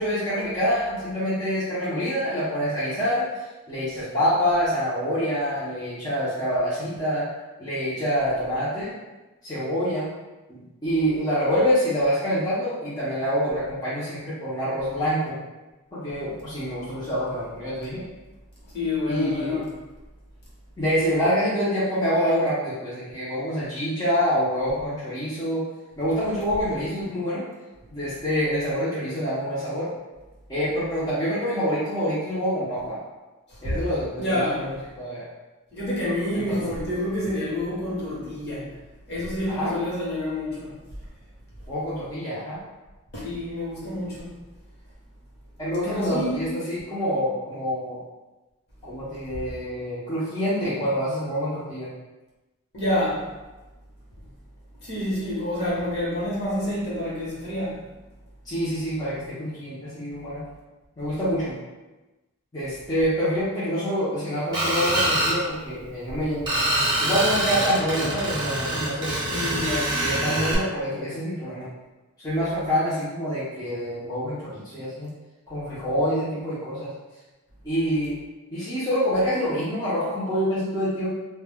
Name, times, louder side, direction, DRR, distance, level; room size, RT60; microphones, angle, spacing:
voice 1, 0.0-3.3 3.7-7.3 7.6-8.9 9.4-10.1 10.5-15.4 15.9-18.0 19.1-19.6 20.8-25.6 26.0-27.4 27.9-29.9 30.5-33.0 33.6-34.7 35.0-35.2 36.5-36.6 39.5-39.7 41.7-42.6 45.6-48.0 48.8-51.9 58.5-60.4 61.0-61.5 62.5-66.5 67.0-69.1 70.0-71.7 72.2-75.1 75.5-76.9 77.6-78.1 78.5-81.1, equal, 15° left, -12 dB, 0.6 m, -26 dB
voice 2, 18.7-19.6 33.5-33.8 34.2-34.7 35.7-38.7 39.1-40.8 43.1-44.3 45.8-46.4 52.7-53.3 54.8-57.8 66.0-66.1 69.3-70.0, left 1 dB, 50° left, -7 dB, 1.0 m, -28 dB
Screech, 64.5-65.4 66.5-70.5, right 1 dB, 20° right, 0.8 m, -25 dB
2.2 x 2.2 x 3.4 m, 1.1 s
head